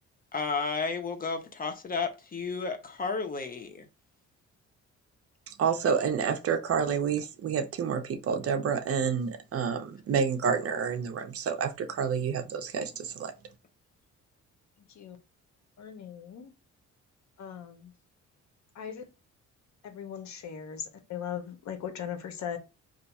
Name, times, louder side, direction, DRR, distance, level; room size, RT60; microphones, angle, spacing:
voice 1, 0.3-3.9, left 4 dB, 30° left, 0.8 m, -32 dB
voice 2, 5.5-13.3, right 6 dB, 50° right, 0.6 m, -29 dB
voice 3, 15.8-16.5 17.4-17.9 18.7-19.0 19.8-22.6, left 8 dB, 65° left, 0.8 m, -39 dB
2.7 x 2.2 x 4.1 m
cardioid pair, 90°, 30 cm